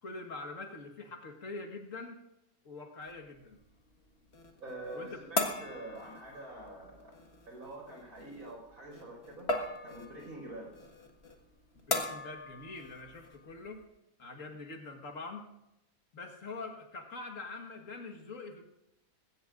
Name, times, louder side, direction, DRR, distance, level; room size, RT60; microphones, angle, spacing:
voice 1, 0.0-2.2 2.6-3.6 4.9-5.2 11.7-13.9 14.2-15.5 16.1-18.6, left 3 dB, 60° left, 4 dB, 1.9 m, -44 dB
sound 1, 3.0-13.8, left 2 dB, 45° left, 1.8 m, -40 dB
voice 2, 4.6-5.2 5.6-7.2 7.5-9.5 9.8-10.7, right 1 dB, 80° right, -1 dB, 5.4 m, -45 dB
20.0 x 17.0 x 2.5 m, 0.89 s
omnidirectional pair, 1.6 m